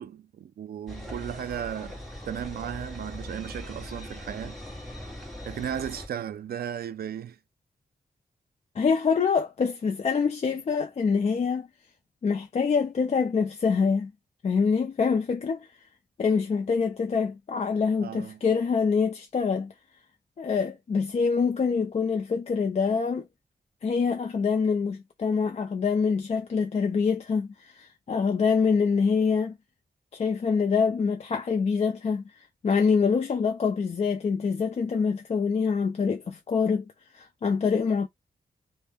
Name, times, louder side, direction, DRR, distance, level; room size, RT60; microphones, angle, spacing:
voice 1, 0.0-4.6 5.4-7.4 18.0-18.4, right 9 dB, 75° right, 0.4 m, -35 dB
sound 1, 0.9-6.1, left 1 dB, ahead, 1.3 m, -40 dB
voice 2, 8.8-11.7 12.2-14.1 14.4-15.7 16.2-19.7 20.4-23.2 23.8-29.6 30.1-32.2 32.6-36.8 37.1-38.1, left 5 dB, 45° left, 0.4 m, -25 dB
2.6 x 2.0 x 3.4 m
wide cardioid pair, 145°, 16 cm